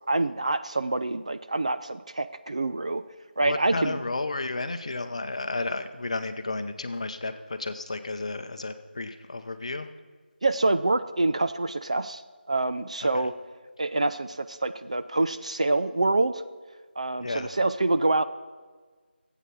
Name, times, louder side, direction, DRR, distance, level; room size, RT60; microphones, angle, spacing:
voice 1, 0.1-3.0 3.4-4.0 10.4-12.2 12.5-13.3 13.8-16.4 17.0-18.2, right 2 dB, 35° right, 11 dB, 0.4 m, -26 dB
voice 2, 3.4-7.3 7.6-9.9 17.2-17.5, left 3 dB, 35° left, 9 dB, 0.8 m, -32 dB
13.5 x 8.3 x 7.0 m, 1.4 s
figure-of-eight pair, 170°, 6 cm